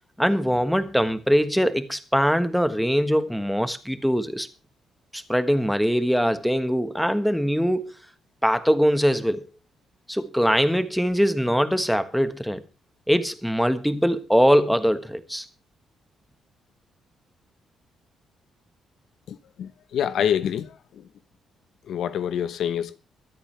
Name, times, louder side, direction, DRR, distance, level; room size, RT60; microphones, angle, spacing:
voice 1, 0.2-4.5 5.1-7.9 8.4-9.5 10.1-12.6 13.1-15.4, equal, ahead, 1.3 m, -22 dB
voice 2, 19.3-20.7 21.9-23.0, left 9 dB, 65° left, 0.9 m, -26 dB
24.0 x 8.7 x 3.3 m
cardioid pair, 115°, 0 cm